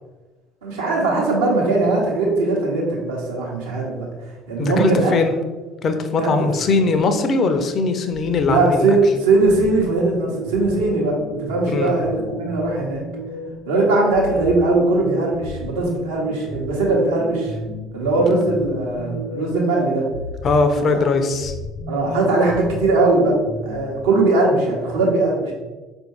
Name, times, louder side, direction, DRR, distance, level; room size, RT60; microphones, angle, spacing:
voice 1, 0.6-4.1 4.5-5.1 6.2-6.5 8.4-13.0 13.7-17.5 17.9-20.0 20.8-20.9 21.9-23.4 23.6-25.5, right 2 dB, 70° right, -2 dB, 0.9 m, -20 dB
voice 2, 4.6-5.3 5.8-9.0 11.7-11.9 20.4-21.5, left 4 dB, 40° left, 7 dB, 0.4 m, -20 dB
sound 1, 6.1-7.7 8.1-13.7 14.1-19.7 20.1-24.1, equal, 80° left, 0.7 m, -33 dB
4.5 x 2.6 x 3.1 m, 1.2 s
figure-of-eight pair, 60°, 0 cm